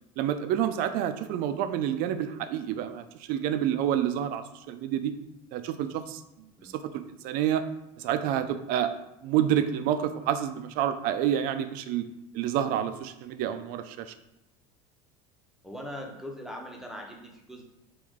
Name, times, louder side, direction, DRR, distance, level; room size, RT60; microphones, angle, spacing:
voice 1, 0.2-5.1 5.5-6.2 6.6-7.6 8.0-8.9 9.2-12.1 12.3-14.1, right 10 dB, 60° right, 10 dB, 0.5 m, -28 dB
voice 2, 15.6-17.6, equal, ahead, 1 dB, 0.8 m, -40 dB
4.8 x 3.0 x 3.6 m, 0.88 s
supercardioid pair, 115°, 17 cm